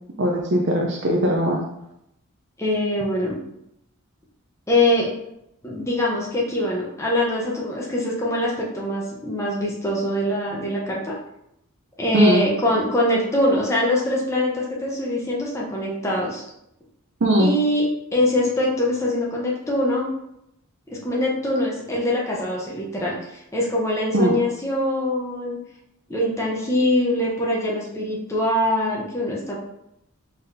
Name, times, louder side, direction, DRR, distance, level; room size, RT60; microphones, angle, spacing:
voice 1, 0.2-1.6 12.1-12.4 17.2-17.5 24.1-24.3, right 1 dB, 55° right, 0 dB, 0.5 m, -19 dB
voice 2, 2.6-3.4 4.7-5.1 5.6-11.1 12.0-16.4 17.4-17.9 18.1-20.1 20.9-25.6 26.1-29.6, left 1 dB, 15° left, -4 dB, 0.7 m, -23 dB
4.0 x 4.0 x 2.6 m, 0.80 s
head